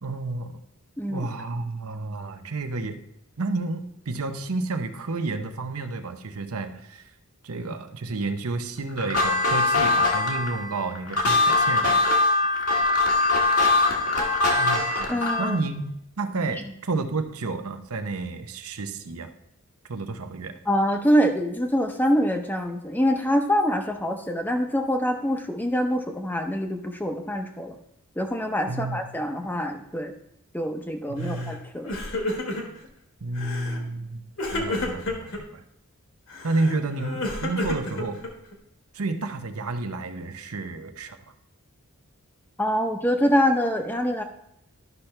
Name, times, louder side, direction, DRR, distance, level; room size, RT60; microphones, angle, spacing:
voice 1, 0.0-0.6 1.1-3.0 3.4-7.0 7.4-12.0 14.6-19.3 19.9-20.6 28.7-29.0 31.1-31.6 33.2-34.2 34.5-35.6 36.4-38.2 38.9-41.2, right 3 dB, 80° right, 8 dB, 0.8 m, -30 dB
voice 2, 1.0-1.3 15.1-15.6 20.7-27.7 28.2-30.1 30.5-31.9 42.6-44.2, equal, 10° left, 5 dB, 0.7 m, -25 dB
sound 1, 9.0-15.6, left 3 dB, 85° left, 1.7 m, -22 dB
Crying sobbing, 31.2-31.6 31.8-32.9 33.4-33.8 34.4-35.4 36.3-38.5, left 2 dB, 60° left, 1.5 m, -31 dB
12.0 x 5.9 x 3.3 m, 0.77 s
head